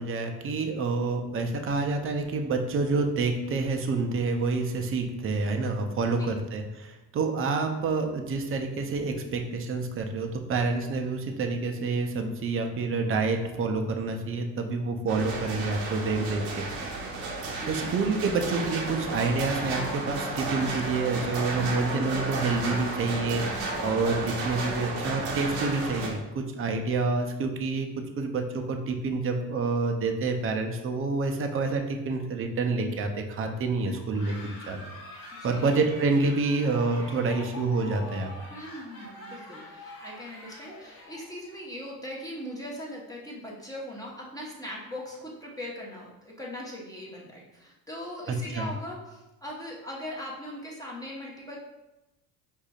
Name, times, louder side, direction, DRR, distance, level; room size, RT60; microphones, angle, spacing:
voice 1, 0.0-16.6 17.6-27.9 28.2-34.8 35.4-38.3 48.3-48.7, right 3 dB, 30° right, 4 dB, 0.5 m, -28 dB
sound 1, 15.1-26.1, right 2 dB, 90° right, 0.8 m, -33 dB
voice 2, 17.6-17.9 35.4-35.7 38.5-51.6, left 1 dB, 10° left, -4 dB, 1.0 m, -40 dB
sound 2, 33.8-41.7, left 1 dB, 75° left, 1.3 m, -45 dB
4.8 x 2.7 x 2.3 m, 0.99 s
supercardioid pair, 75°, 42 cm